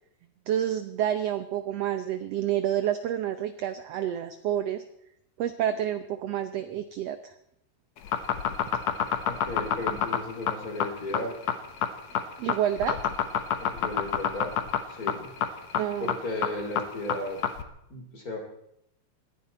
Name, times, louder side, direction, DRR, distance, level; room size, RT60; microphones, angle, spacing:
voice 1, 0.5-4.8 5.4-7.3 12.4-13.0 15.8-16.1, right 10 dB, 75° right, 10 dB, 1.5 m, -29 dB
sound 1, 8.0-17.6, left 8 dB, 60° left, 2.1 m, -27 dB
voice 2, 9.3-11.4 13.6-14.5 14.9-15.3 16.0-17.4 17.9-18.4, left 1 dB, 25° left, 3 dB, 3.0 m, -35 dB
21.0 x 15.0 x 4.3 m, 0.75 s
omnidirectional pair, 3.8 m